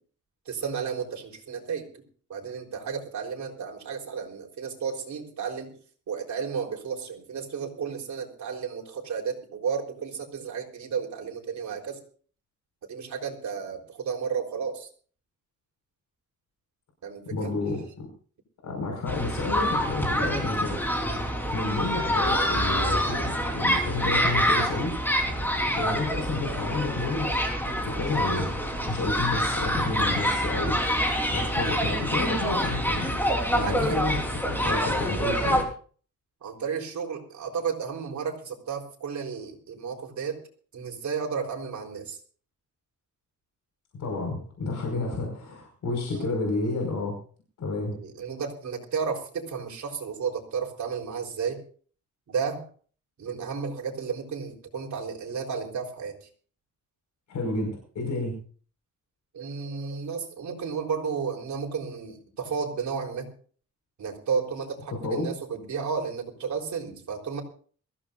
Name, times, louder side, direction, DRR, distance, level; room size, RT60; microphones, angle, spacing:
voice 1, 0.5-1.8 2.3-5.7 6.1-12.0 12.9-14.9 17.0-17.5 25.6-25.8 33.6-34.0 36.4-40.4 40.7-42.2 46.1-46.4 47.9-51.6 52.3-52.6 53.2-56.1 59.3-63.3 64.0-67.4, right 6 dB, 65° right, 1 dB, 4.1 m, -32 dB
voice 2, 17.3-18.1 18.6-20.8 21.5-25.0 25.7-27.6 27.8-28.6 28.9-31.0 31.3-33.1 33.5-35.7 43.9-47.2 47.6-48.0 57.3-58.4 64.9-65.3, left 3 dB, 75° left, 1 dB, 5.3 m, -30 dB
sound 1, 19.1-35.6, equal, 5° left, 3.9 m, -26 dB
22.5 x 15.5 x 2.6 m, 0.42 s
wide cardioid pair, 145°, 30 cm